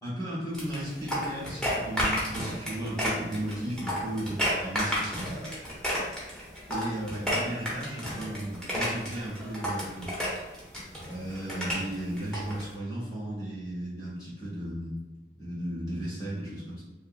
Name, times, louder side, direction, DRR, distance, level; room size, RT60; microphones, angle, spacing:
voice 1, 0.0-5.1 6.7-10.2 11.1-15.0 15.4-16.8, right 1 dB, 20° left, -7 dB, 1.1 m, -35 dB
sound 1, 0.5-12.7, equal, 5° left, 0.7 m, -32 dB
2.9 x 2.9 x 2.3 m, 1.2 s
head